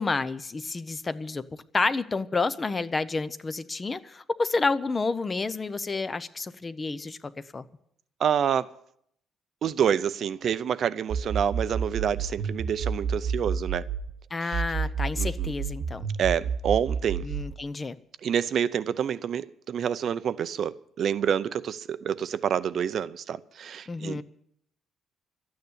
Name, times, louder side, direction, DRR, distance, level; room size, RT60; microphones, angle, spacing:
voice 1, 0.0-7.6 14.3-16.1 17.2-18.0 23.9-24.2, left 3 dB, 20° left, 0.6 m, -30 dB
voice 2, 8.2-8.7 9.6-13.9 14.4-14.6 15.2-15.5 16.2-17.3 18.2-24.2, right 8 dB, 50° right, 0.5 m, -28 dB
sound 1, 11.1-14.1 14.5-17.5, right 6 dB, 65° right, 1.1 m, -30 dB
13.0 x 9.5 x 9.8 m
cardioid pair, 155°, 0 cm